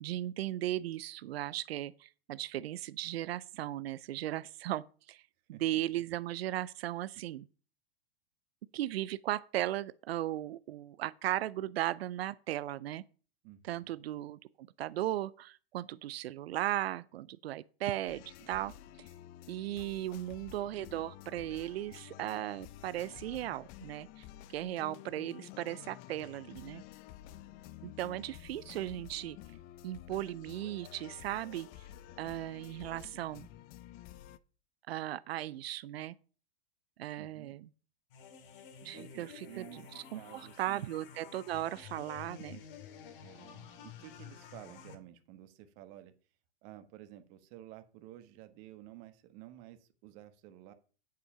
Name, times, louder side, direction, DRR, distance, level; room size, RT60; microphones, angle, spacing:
voice 1, 0.0-5.2 5.6-7.5 8.7-13.0 13.7-19.1 19.5-24.3 24.5-26.8 28.0-29.4 29.8-31.7 32.2-33.5 34.9-36.1 37.0-37.6 38.8-42.6, right 14 dB, 80° right, 0.6 m, -37 dB
voice 2, 13.4-13.9 27.8-28.2 37.2-37.6 38.9-39.8 40.1-40.9 43.2-46.1 46.6-50.7, right 13 dB, 40° right, 1.5 m, -52 dB
sound 1, 18.1-34.4, left 13 dB, 30° left, 0.5 m, -51 dB
sound 2, 38.1-44.9, left 8 dB, 60° left, 2.3 m, -51 dB
8.4 x 7.7 x 5.6 m
hypercardioid pair, 140°, 31 cm